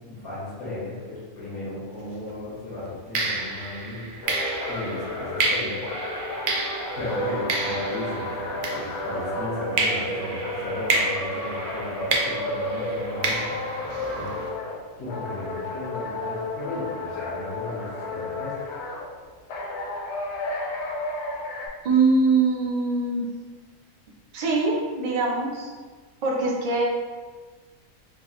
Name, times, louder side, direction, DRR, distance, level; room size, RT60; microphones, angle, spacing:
voice 1, 0.0-6.2 7.0-14.3 15.0-18.7, left 2 dB, 90° left, -10 dB, 1.7 m, -35 dB
sound 1, 2.0-2.2 3.1-9.3 9.8-14.5, right 3 dB, 90° right, 1.1 m, -30 dB
sound 2, 4.2-14.8 15.1-19.1 19.5-21.7, left 1 dB, 60° left, 0.7 m, -32 dB
voice 2, 21.8-23.3 24.3-25.7 26.2-26.8, right 3 dB, 55° right, -2 dB, 0.4 m, -22 dB
4.6 x 2.4 x 2.9 m, 1.5 s
omnidirectional pair, 1.5 m